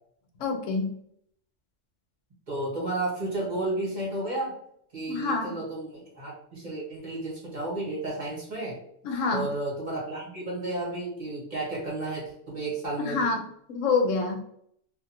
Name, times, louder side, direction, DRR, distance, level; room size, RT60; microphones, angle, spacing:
voice 1, 0.4-0.9 5.1-5.6 9.0-9.5 13.0-13.4 13.7-14.4, left 4 dB, 85° left, 4 dB, 1.0 m, -27 dB
voice 2, 2.5-4.5 4.9-8.8 9.3-13.3, right 2 dB, 40° right, -5 dB, 1.3 m, -32 dB
2.7 x 2.5 x 2.6 m, 0.69 s
omnidirectional pair, 1.3 m